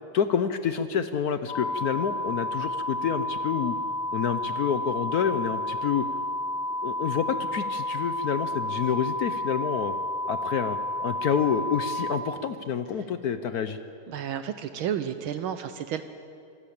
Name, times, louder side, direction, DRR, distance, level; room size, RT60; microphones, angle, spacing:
voice 1, 0.1-3.8 4.1-6.0 6.8-9.9 10.3-13.8, left 7 dB, 65° left, 10 dB, 0.9 m, -28 dB
sound 1, 1.5-12.1, left 1 dB, 45° left, 2.3 m, -31 dB
voice 2, 14.1-16.0, right 9 dB, 75° right, 10 dB, 1.6 m, -31 dB
25.5 x 12.5 x 8.6 m, 2.5 s
omnidirectional pair, 2.4 m